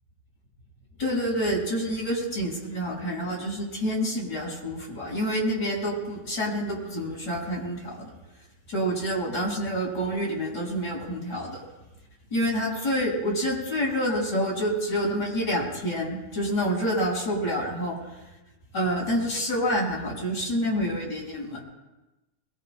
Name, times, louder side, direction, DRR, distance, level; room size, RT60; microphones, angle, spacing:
voice 1, 1.0-8.1 8.7-11.6 12.3-18.0 18.7-21.6, equal, 30° left, -4 dB, 6.3 m, -28 dB
23.0 x 23.0 x 2.2 m, 1.1 s
omnidirectional pair, 3.8 m